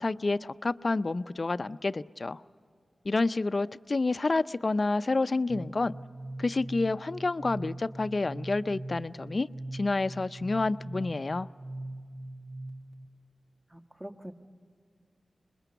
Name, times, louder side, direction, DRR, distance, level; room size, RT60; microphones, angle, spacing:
voice 1, 0.0-2.4 3.1-5.9 6.4-9.5 9.7-11.5, left 3 dB, 50° left, 14 dB, 0.5 m, -29 dB
sound 1, 5.5-13.1, right 1 dB, 85° right, 1.2 m, -41 dB
voice 2, 13.7-14.3, right 1 dB, 20° right, 6 dB, 1.5 m, -43 dB
26.0 x 21.0 x 6.9 m, 2.2 s
cardioid pair, 45°, 0 cm